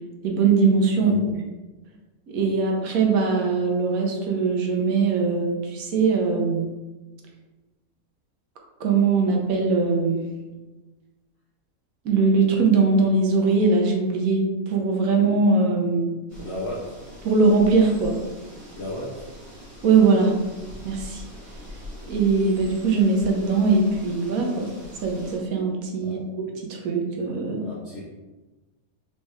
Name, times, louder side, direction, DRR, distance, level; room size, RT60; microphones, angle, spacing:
voice 1, 0.2-1.3 2.3-6.7 8.8-10.3 12.0-16.1 17.2-18.2 19.8-20.3 20.8-21.2 22.1-24.7 25.0-27.6, right 4 dB, 70° right, 1 dB, 1.2 m, -21 dB
voice 2, 1.0-1.3 16.3-16.9 18.7-19.2 26.0-26.2 27.6-28.0, left 1 dB, 55° left, -6 dB, 0.9 m, -34 dB
sound 1, 16.3-25.4, left 1 dB, 20° right, 1.4 m, -42 dB
4.2 x 3.3 x 3.3 m, 1.2 s
omnidirectional pair, 1.6 m